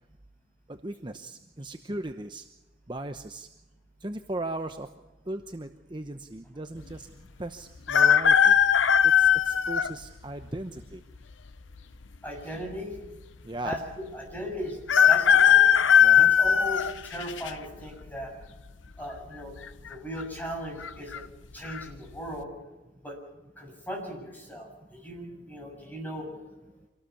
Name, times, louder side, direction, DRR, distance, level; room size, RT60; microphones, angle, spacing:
voice 1, 0.8-2.4 2.9-3.5 4.0-4.9 5.3-7.1 7.4-8.5 9.2-11.0 13.4-13.7 16.0-16.3, right 2 dB, 25° right, 6 dB, 0.9 m, -37 dB
sound 1, 7.9-9.9 10.6-10.7 11.8-12.4 12.7-12.8 13.0-13.1 14.9-17.5 18.0-18.4 19.6-19.9 20.2-20.3 20.8-21.2 21.6-21.8, left 8 dB, 85° left, 0.8 m, -19 dB
voice 2, 12.2-13.0 13.6-14.8 15.1-15.7 16.2-18.3 19.0-19.6 19.9-21.3 21.5-22.5 23.0-23.2 23.6-26.3, equal, 10° left, 1 dB, 7.0 m, -37 dB
25.5 x 18.5 x 7.1 m, 1.1 s
head